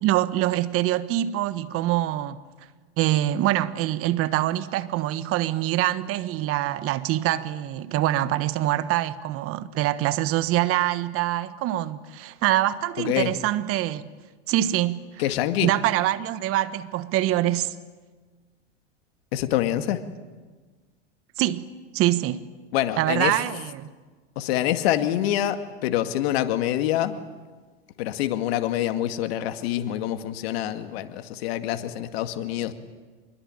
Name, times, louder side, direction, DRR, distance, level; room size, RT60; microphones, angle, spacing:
voice 1, 0.0-2.4 3.0-14.0 14.5-15.2 15.6-17.7 21.4-21.7 21.9-22.4 23.0-23.9, right 14 dB, 40° right, 1.4 m, -24 dB
voice 2, 13.0-13.3 15.2-15.7 19.3-20.0 22.7-23.4 24.4-27.2 28.0-32.7, left 12 dB, 65° left, 2.2 m, -26 dB
25.5 x 22.5 x 9.1 m
hypercardioid pair, 105°, 33 cm